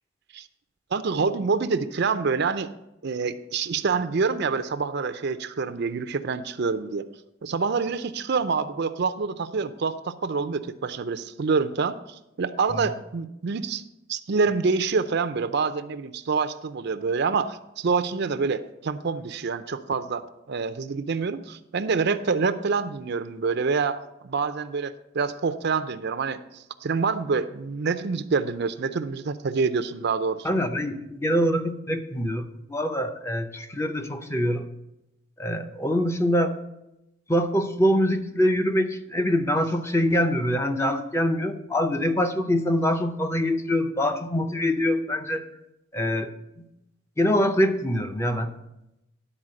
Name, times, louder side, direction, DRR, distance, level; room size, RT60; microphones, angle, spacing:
voice 1, 0.9-2.7 3.0-7.1 7.4-12.0 12.4-13.8 14.1-30.6, right 4 dB, 55° right, 11 dB, 0.5 m, -26 dB
voice 2, 30.4-34.6 35.4-36.6 37.3-45.5 45.9-46.3 47.2-48.5, equal, 15° left, 6 dB, 0.6 m, -24 dB
11.0 x 4.3 x 7.5 m, 0.88 s
head